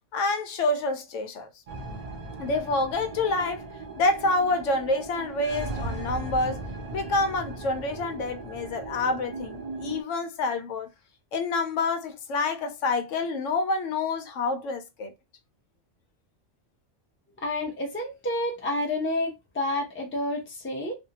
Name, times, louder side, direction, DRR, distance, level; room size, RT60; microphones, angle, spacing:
voice 1, 0.1-1.5 2.4-3.6 4.0-6.6 6.9-10.9 11.3-15.1, left 2 dB, 80° left, 0.9 m, -27 dB
sound 1, 1.7-10.0, right 3 dB, 65° right, 0.3 m, -37 dB
voice 2, 17.4-20.9, left 1 dB, 15° left, 0.5 m, -29 dB
2.6 x 2.1 x 2.8 m
omnidirectional pair, 1.3 m